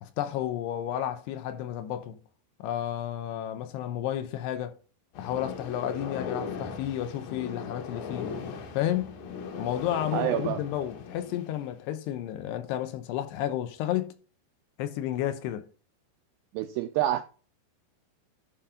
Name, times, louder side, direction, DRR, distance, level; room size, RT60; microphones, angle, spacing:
voice 1, 0.0-2.2 2.6-4.7 5.2-8.3 8.7-9.1 9.6-14.1 14.8-15.7, left 11 dB, 90° left, 3.0 m, -32 dB
sound 1, 5.2-11.6, left 5 dB, 70° left, 3.1 m, -38 dB
voice 2, 10.1-10.6 16.5-17.2, right 13 dB, 85° right, 2.1 m, -27 dB
11.5 x 3.8 x 5.5 m
omnidirectional pair, 4.7 m